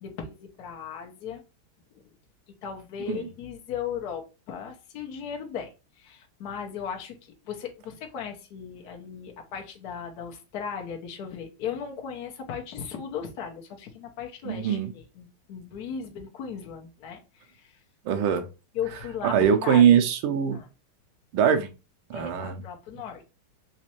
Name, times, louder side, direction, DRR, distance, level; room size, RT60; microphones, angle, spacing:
voice 1, 0.0-1.4 1.9-2.1 2.6-17.8 18.7-19.9 20.5-20.7 22.1-23.3, left 7 dB, 60° left, 1.2 m, -37 dB
voice 2, 14.4-14.9 18.0-18.5 19.2-20.6 21.3-21.7 22.1-22.6, right 8 dB, 85° right, 1.5 m, -22 dB
4.1 x 2.5 x 2.9 m
omnidirectional pair, 2.3 m